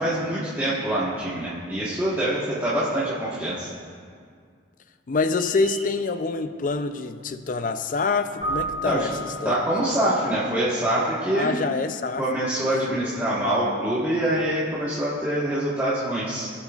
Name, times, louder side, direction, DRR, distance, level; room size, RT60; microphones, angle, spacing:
voice 1, 0.0-3.7 8.8-9.1 9.4-11.5 12.2-16.5, right 1 dB, 10° right, -11 dB, 1.3 m, -25 dB
voice 2, 5.1-9.6 11.3-12.2 12.7-13.1, left 4 dB, 45° left, 10 dB, 0.4 m, -26 dB
Coach Whistle - Cleaned up, 5.3-6.0, right 3 dB, 85° right, 1.6 m, -41 dB
Keyboard (musical), 8.4-10.2, right 2 dB, 25° right, 2.6 m, -32 dB
18.0 x 7.9 x 2.4 m, 2.1 s
head